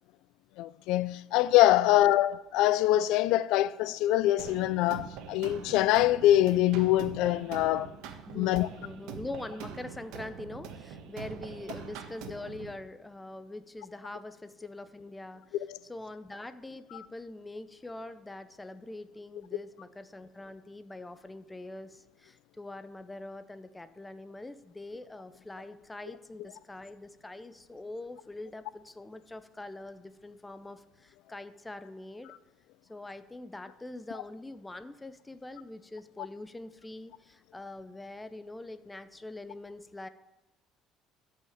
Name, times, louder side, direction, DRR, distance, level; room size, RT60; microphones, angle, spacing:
voice 1, 0.6-7.9 8.3-8.7 15.7-15.8, left 14 dB, 75° left, 0.3 m, -24 dB
sound 1, 4.4-12.7, right 7 dB, 80° right, 1.3 m, -44 dB
voice 2, 8.3-15.6 15.9-32.3 32.9-40.1, left 2 dB, 10° left, 0.6 m, -44 dB
12.5 x 5.7 x 7.3 m
cardioid pair, 155°, 0 cm